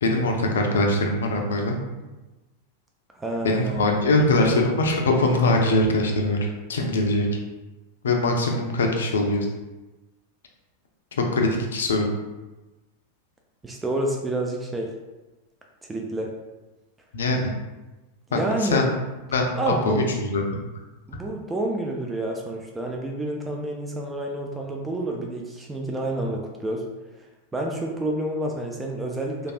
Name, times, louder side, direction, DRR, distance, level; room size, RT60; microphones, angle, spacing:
voice 1, 0.0-1.8 3.4-6.4 6.7-7.3 8.0-9.5 11.2-12.1 17.1-17.4 18.3-18.9 19.3-20.4, left 2 dB, 65° left, 2 dB, 0.4 m, -22 dB
voice 2, 3.1-4.1 13.6-14.9 15.9-16.3 18.3-19.0 19.5-20.1 21.1-26.8 27.5-29.5, right 1 dB, 10° right, 0 dB, 0.3 m, -29 dB
3.1 x 2.3 x 2.5 m, 1.1 s
figure-of-eight pair, 90°, 0 cm